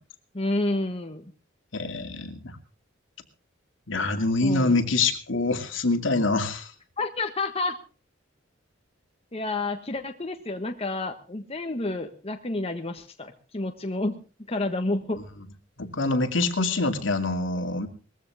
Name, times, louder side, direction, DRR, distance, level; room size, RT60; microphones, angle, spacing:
voice 1, 0.3-1.2 4.4-4.7 7.0-7.8 9.3-14.2 14.5-15.2, left 2 dB, 30° left, 5 dB, 1.4 m, -29 dB
voice 2, 1.7-2.6 3.9-6.7 15.8-17.9, left 3 dB, 70° left, 6 dB, 2.5 m, -25 dB
20.5 x 15.5 x 3.6 m, 0.36 s
head